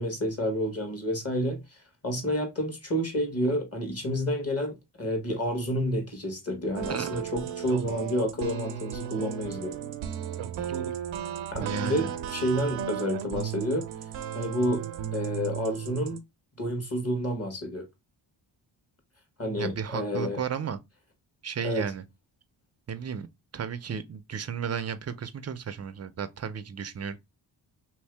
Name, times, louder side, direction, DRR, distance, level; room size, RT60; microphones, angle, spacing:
voice 1, 0.0-1.6 2.0-9.7 11.5-13.8 14.3-14.8 15.1-16.2 16.6-17.9 19.4-20.4 21.6-21.9, equal, 30° left, 1.2 m, -29 dB
sound 1, 6.7-16.2, right 8 dB, 80° right, 0.6 m, -35 dB
voice 2, 6.9-7.2 11.6-12.1 19.6-20.8 21.4-22.0 22.9-23.3 23.5-27.2, right 7 dB, 35° right, 0.4 m, -34 dB
2.9 x 2.7 x 3.2 m
cardioid pair, 85°, 47 cm